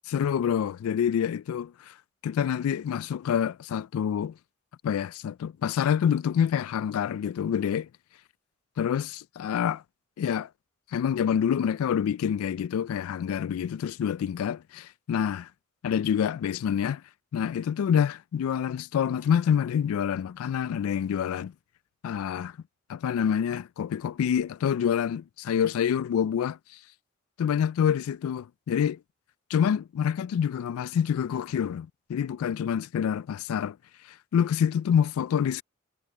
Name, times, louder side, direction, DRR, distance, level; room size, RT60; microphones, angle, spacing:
voice 1, 0.1-1.9 2.2-4.3 4.8-7.9 8.8-9.8 10.2-10.5 10.9-15.5 15.8-17.0 17.3-21.5 22.0-22.5 22.9-26.6 27.4-29.0 29.5-33.8 34.3-35.6, left 8 dB, 85° left, 0.3 m, -27 dB
head